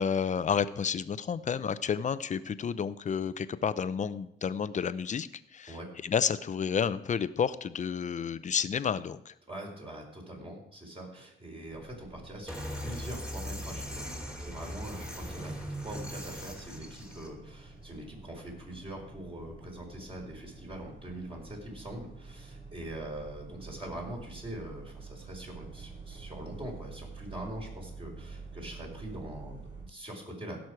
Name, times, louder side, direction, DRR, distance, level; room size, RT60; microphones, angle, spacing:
voice 1, 0.0-5.8 6.0-9.3, left 7 dB, 40° left, 15 dB, 0.6 m, -30 dB
voice 2, 9.5-30.6, right 1 dB, 25° right, 0 dB, 4.2 m, -43 dB
sound 1, 11.6-29.8, right 4 dB, 65° right, 5.2 m, -48 dB
sound 2, 12.5-17.3, equal, 5° right, 2.6 m, -39 dB
16.5 x 6.3 x 4.8 m, 0.75 s
cardioid pair, 90°, 20 cm